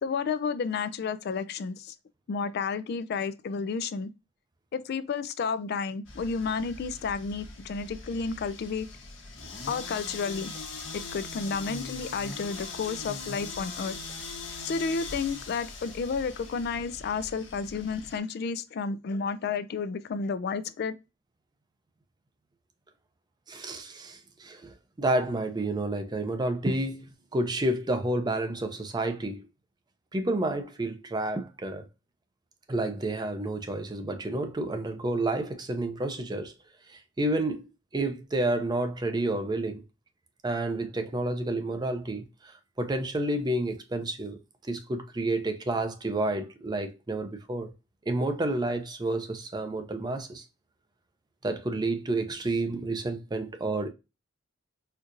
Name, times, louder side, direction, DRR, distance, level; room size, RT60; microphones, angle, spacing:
voice 1, 0.0-1.9 2.3-4.1 4.7-8.9 9.7-10.5 11.1-14.0 14.6-20.9, left 5 dB, 55° left, 0.3 m, -31 dB
sound 1, 6.0-18.2, left 3 dB, 75° left, 1.2 m, -41 dB
voice 2, 23.5-29.4 30.1-31.9 32.7-36.5 36.9-39.8 40.4-42.5 42.8-44.4 44.6-47.7 48.1-50.4 51.4-53.9, right 2 dB, 20° right, 0.6 m, -30 dB
4.4 x 2.5 x 2.5 m
head